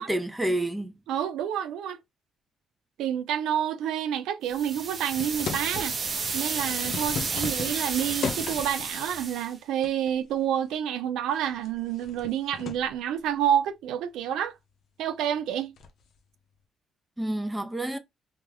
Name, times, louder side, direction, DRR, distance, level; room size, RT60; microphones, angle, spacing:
voice 1, 0.0-1.0 17.2-18.0, right 1 dB, 10° right, 0.6 m, -29 dB
voice 2, 1.1-2.0 3.0-5.9 6.3-14.5 15.0-15.7, right 10 dB, 90° right, 0.3 m, -28 dB
sound 1, 4.5-9.5, right 4 dB, 50° right, 0.8 m, -32 dB
sound 2, 5.2-6.1 6.6-8.9 9.8-10.3 10.7-10.8 11.4-12.9 15.8-16.0, left 6 dB, 70° left, 0.6 m, -36 dB
2.4 x 2.2 x 3.2 m
cardioid pair, 90°, 0 cm